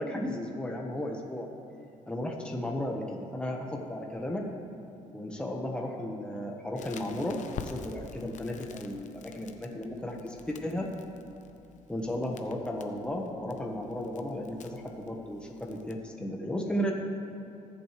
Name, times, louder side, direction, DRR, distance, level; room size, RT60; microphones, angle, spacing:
voice 1, 0.0-1.5 2.1-4.4 5.1-10.9 11.9-16.9, left 1 dB, 5° left, 0 dB, 1.5 m, -34 dB
Crackle, 6.8-15.9, left 6 dB, 60° left, 0.9 m, -48 dB
20.0 x 8.0 x 3.4 m, 2.7 s
cardioid pair, 80°, 14 cm